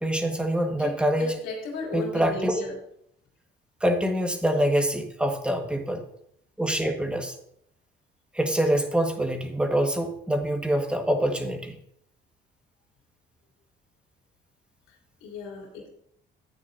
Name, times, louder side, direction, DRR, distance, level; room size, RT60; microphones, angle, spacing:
voice 1, 0.0-1.3 1.9-2.6 3.8-6.0 6.6-7.3 8.3-11.7, right 1 dB, 5° right, 3 dB, 1.6 m, -25 dB
voice 2, 1.2-2.7 15.2-15.9, left 4 dB, 85° left, -2 dB, 3.2 m, -34 dB
13.5 x 8.9 x 2.7 m, 0.74 s
cardioid pair, 120°, 20 cm